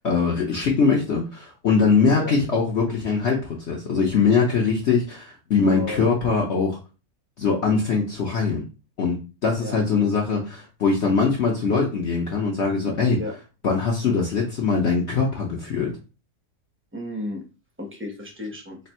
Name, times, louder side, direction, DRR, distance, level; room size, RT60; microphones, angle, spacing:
voice 1, 0.0-6.8 7.4-8.6 9.0-9.2 9.4-13.2 13.6-15.9, left 5 dB, 55° left, -2 dB, 0.9 m, -22 dB
voice 2, 5.6-6.1 9.6-9.8 13.1-13.3 16.9-17.4 17.8-18.8, left 1 dB, 10° right, 0 dB, 0.7 m, -33 dB
3.3 x 2.6 x 4.2 m, 0.32 s
omnidirectional pair, 1.6 m